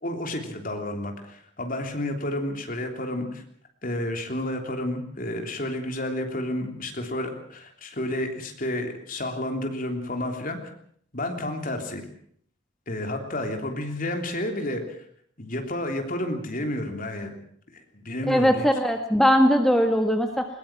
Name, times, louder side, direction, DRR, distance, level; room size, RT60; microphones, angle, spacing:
voice 1, 0.0-3.4 3.8-10.7 11.1-12.0 12.9-14.8 15.4-17.3 17.7-18.7, left 1 dB, 40° left, 5 dB, 3.3 m, -30 dB
voice 2, 18.3-20.4, equal, ahead, 4 dB, 1.6 m, -20 dB
21.0 x 20.0 x 7.3 m, 0.63 s
head